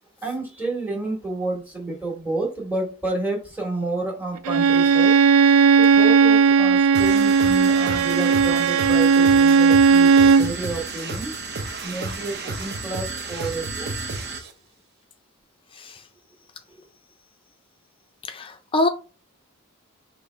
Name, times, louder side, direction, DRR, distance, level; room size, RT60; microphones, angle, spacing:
voice 1, 0.2-5.2 5.8-11.3 11.8-13.9, right 2 dB, 10° right, 1.5 m, -30 dB
Bowed string instrument, 4.4-10.5, right 5 dB, 80° right, 0.3 m, -16 dB
sound 1, 6.9-14.5, right 3 dB, 50° right, 0.7 m, -32 dB
voice 2, 15.7-16.0 18.2-18.9, left 2 dB, 25° left, 0.4 m, -25 dB
5.1 x 3.1 x 3.3 m
head